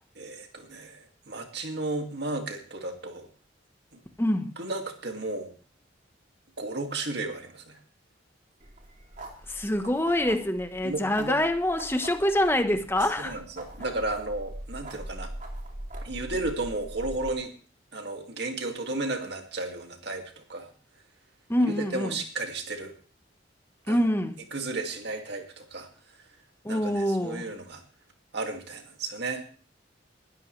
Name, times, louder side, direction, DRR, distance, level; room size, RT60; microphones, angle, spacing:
voice 1, 0.2-3.3 3.9-4.0 4.6-5.5 6.6-7.8 10.8-11.4 13.2-15.3 16.0-17.5 17.9-20.7 21.7-22.9 23.9-24.0 24.5-26.2 26.7-27.8 28.3-29.4, right 2 dB, 60° right, 2.3 m, -34 dB
voice 2, 4.2-4.5 9.5-13.4 21.5-22.2 23.9-24.4 26.6-27.4, left 1 dB, 10° left, 1.1 m, -25 dB
sound 1, 8.6-17.3, right 1 dB, 40° right, 2.8 m, -42 dB
20.0 x 13.0 x 3.3 m
head